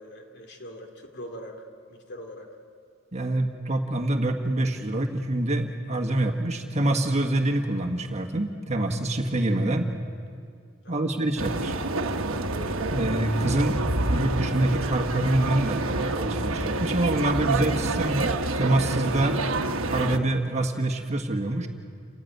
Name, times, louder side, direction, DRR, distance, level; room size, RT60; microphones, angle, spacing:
voice 1, 0.0-2.6 10.8-11.2, equal, 55° left, 3 dB, 2.9 m, -42 dB
voice 2, 3.1-9.9 10.9-11.7 12.9-13.8 14.0-15.9 16.1-19.4 19.9-21.7, right 1 dB, 35° right, 4 dB, 1.6 m, -26 dB
sound 1, 11.4-20.2, right 2 dB, 85° right, 1.3 m, -28 dB
29.0 x 15.5 x 9.3 m, 2.2 s
head